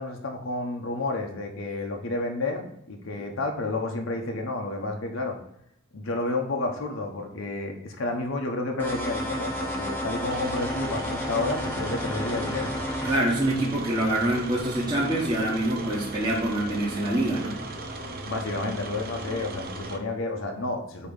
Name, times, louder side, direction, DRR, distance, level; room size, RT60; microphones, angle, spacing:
voice 1, 0.0-5.4 5.9-12.7 18.3-21.1, left 2 dB, 75° left, 2 dB, 1.0 m, -30 dB
sound 1, 8.8-13.2, left 1 dB, 10° left, 0.9 m, -31 dB
sound 2, 10.3-20.0, right 2 dB, 50° right, 0.9 m, -37 dB
voice 2, 13.0-17.6, right 1 dB, 20° right, -5 dB, 1.3 m, -25 dB
8.5 x 3.0 x 5.2 m, 0.77 s
head